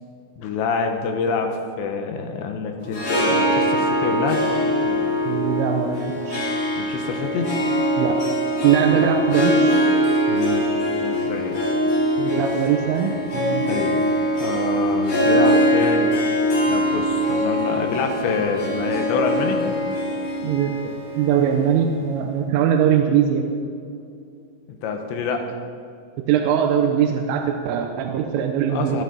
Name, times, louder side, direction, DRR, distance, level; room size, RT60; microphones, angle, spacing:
voice 1, 0.4-1.5 1.8-4.4 4.8-5.1 6.8-7.5 10.3-10.7 11.0-11.5 13.7-14.0 14.4-16.1 16.7-19.6 24.8-25.5 28.7-29.0, left 5 dB, 75° left, 4 dB, 3.0 m, -26 dB
Harp, 2.8-22.2, equal, 55° left, 5.3 m, -22 dB
voice 2, 5.3-6.4 8.0-8.2 8.6-9.8 12.2-13.7 20.4-23.5 26.3-29.0, right 8 dB, 90° right, 3 dB, 3.3 m, -21 dB
23.0 x 8.3 x 4.1 m, 2.5 s
omnidirectional pair, 5.8 m